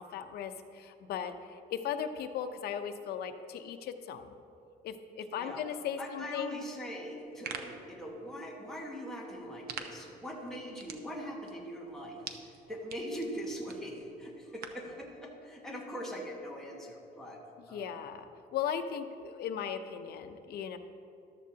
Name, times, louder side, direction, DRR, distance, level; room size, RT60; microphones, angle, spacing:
voice 1, 0.0-4.3 4.8-6.5 17.6-20.8, left 8 dB, 70° left, 7 dB, 0.7 m, -37 dB
voice 2, 6.0-18.0, equal, ahead, -3 dB, 1.4 m, -42 dB
sound 1, 7.1-14.9, right 6 dB, 65° right, 0.8 m, -48 dB
14.0 x 12.0 x 2.8 m, 2.6 s
cardioid pair, 165°, 17 cm